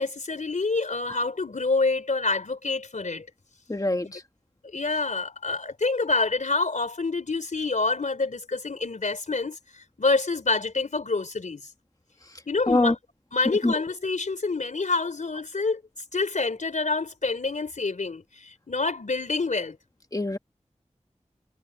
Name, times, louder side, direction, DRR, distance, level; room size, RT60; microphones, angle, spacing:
voice 1, 0.0-3.3 4.6-11.7 12.5-13.0 13.3-15.8 16.1-19.8, left 3 dB, 85° left, 3.6 m, -27 dB
voice 2, 3.7-4.2 12.7-12.9 13.6-13.7 20.1-20.4, left 2 dB, 30° left, 1.7 m, -23 dB
wide cardioid pair, 50°, 12 cm